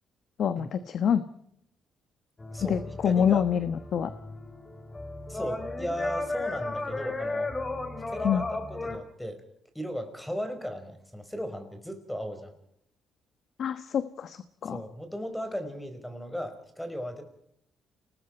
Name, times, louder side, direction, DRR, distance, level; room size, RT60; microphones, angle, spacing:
voice 1, 0.4-1.2 2.6-4.1 8.2-8.4 13.6-14.8, left 8 dB, 65° left, 12 dB, 1.1 m, -26 dB
sound 1, 2.4-9.0, left 2 dB, 25° left, 3.8 m, -34 dB
voice 2, 2.5-3.4 5.3-7.5 8.1-9.4 9.7-12.6 14.6-17.2, equal, 5° left, 8 dB, 4.9 m, -36 dB
29.5 x 20.0 x 4.5 m, 0.73 s
cardioid pair, 90°, 0 cm